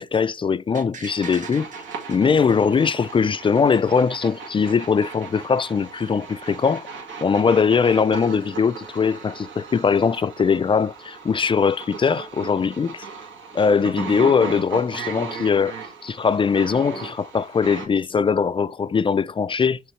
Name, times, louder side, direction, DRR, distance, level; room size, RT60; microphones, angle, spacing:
voice 1, 0.0-1.7 2.1-6.9 7.2-13.0 13.5-15.8 16.0-19.8, left 6 dB, 25° left, 0.3 m, -21 dB
sound 1, 0.7-3.7 4.0-4.1, right 5 dB, 40° right, 1.5 m, -43 dB
sound 2, 1.1-17.9, right 5 dB, 75° right, 2.0 m, -37 dB
6.2 x 5.0 x 3.1 m
cardioid pair, 90°, 20 cm